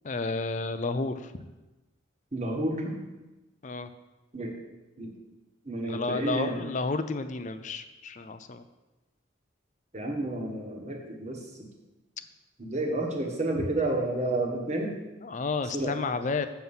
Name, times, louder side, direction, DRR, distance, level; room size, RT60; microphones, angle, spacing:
voice 1, 0.0-1.5 3.6-3.9 5.9-8.6 15.2-16.5, left 3 dB, 40° left, 10 dB, 0.5 m, -31 dB
voice 2, 2.3-3.0 4.3-4.5 5.0-5.1 5.6-6.6 9.9-11.4 12.6-14.9 15.7-15.9, right 2 dB, 35° right, 1 dB, 1.5 m, -30 dB
7.7 x 7.0 x 5.5 m, 1.1 s
head